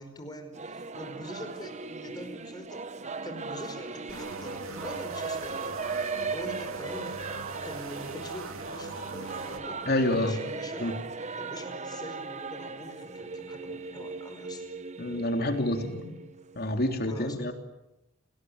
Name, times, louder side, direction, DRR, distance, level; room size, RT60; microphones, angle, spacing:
voice 1, 0.0-2.8 3.2-5.8 6.3-10.9 11.4-14.7 17.0-17.5, left 1 dB, 20° left, 6 dB, 5.0 m, -44 dB
Singing / Musical instrument, 0.5-16.8, right 4 dB, 35° right, 1.1 m, -38 dB
sound 1, 4.1-9.6, right 3 dB, 85° right, 3.0 m, -41 dB
voice 2, 9.9-10.4 10.8-10.9 15.0-16.1 16.6-17.5, left 1 dB, 50° left, 5 dB, 3.6 m, -28 dB
29.5 x 20.5 x 9.7 m, 0.95 s
head